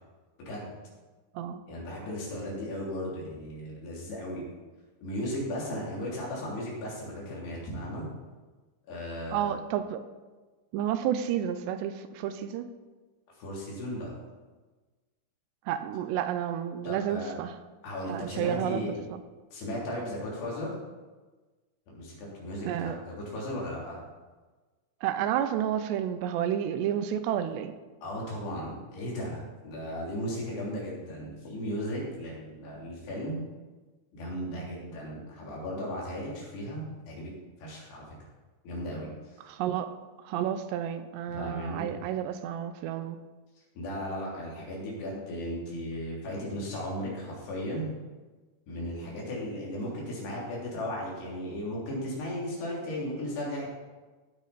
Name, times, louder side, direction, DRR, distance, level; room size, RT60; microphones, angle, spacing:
voice 1, 0.4-0.8 1.7-4.5 5.0-8.1 8.9-9.5 13.4-14.1 16.8-17.3 17.8-19.1 19.5-20.8 21.9-24.0 28.0-33.4 34.1-37.3 37.6-38.0 38.6-39.4 41.3-42.0 43.8-47.9 48.7-53.7, equal, 70° left, -4 dB, 5.2 m, -36 dB
voice 2, 9.3-10.0 10.7-12.7 15.7-17.6 18.1-18.8 22.6-23.0 25.0-27.8 39.5-39.9 40.3-43.2, right 10 dB, 80° right, 10 dB, 2.8 m, -30 dB
16.0 x 8.3 x 4.2 m, 1.3 s
omnidirectional pair, 5.0 m